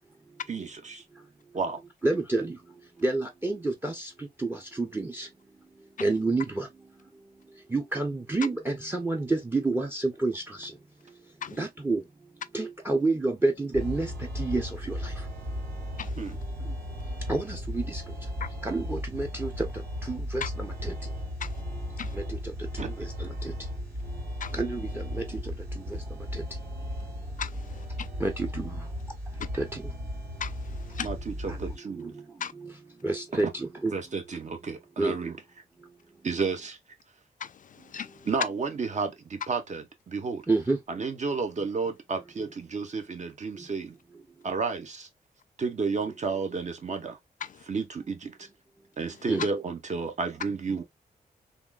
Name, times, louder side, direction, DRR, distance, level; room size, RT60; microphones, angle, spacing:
voice 1, 0.5-1.0 1.5-1.8 16.2-16.4 22.8-22.9 31.0-32.2 33.3-33.4 33.9-35.4 36.2-36.8 38.3-40.4 40.9-44.0 44.4-45.1 45.6-47.2 47.7-48.5 49.0-50.8, right 4 dB, 45° right, 1.0 m, -32 dB
voice 2, 2.0-2.5 3.0-3.9 4.8-5.3 6.0-6.7 7.7-10.7 11.6-12.0 12.5-14.1 14.4-14.6 17.3-18.0 18.6-19.7 20.1-20.9 24.6-24.9 28.2-28.7 29.6-29.7 33.0-33.9 35.0-35.1 40.5-40.8 49.3-49.4, right 2 dB, 15° right, 0.7 m, -28 dB
sound 1, 13.7-31.8, equal, 65° right, 2.6 m, -36 dB
voice 3, 16.0-16.3 18.4-18.5 20.4-20.5 21.4-21.6 22.0-22.2 24.4-24.6 27.4-28.1 30.4-31.1 32.4-32.5 37.4-38.3 47.4-47.6 49.4-49.5, left 8 dB, 50° left, 0.4 m, -37 dB
3.5 x 2.6 x 2.3 m
cardioid pair, 60°, 17 cm